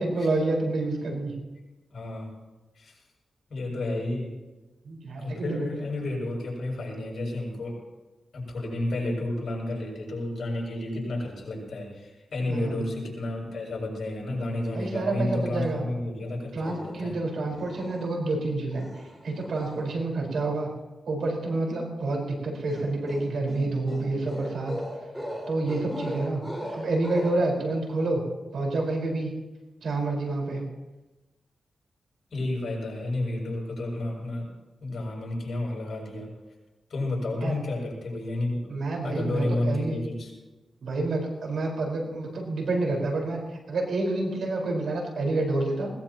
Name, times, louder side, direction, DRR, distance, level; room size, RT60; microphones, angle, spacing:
voice 1, 0.0-1.3 4.8-5.6 12.5-12.8 14.7-15.8 16.5-18.9 19.2-20.7 21.1-24.7 25.5-26.4 26.7-28.2 28.5-29.3 29.8-30.6 37.4-37.6 38.7-40.0 40.8-43.4 43.7-45.9, right 2 dB, 80° right, 0 dB, 4.8 m, -28 dB
voice 2, 1.9-2.4 2.8-2.9 3.5-4.4 5.2-7.8 8.3-17.2 32.3-34.5 34.8-36.3 36.9-38.7 39.0-40.3, left 2 dB, 65° left, -2 dB, 7.2 m, -31 dB
sound 1, 16.6-17.2 17.5-18.3 18.7-19.9 22.7-27.3, equal, 10° right, 6.0 m, -38 dB
20.5 x 19.5 x 3.0 m, 1.1 s
cardioid pair, 90°, 0 cm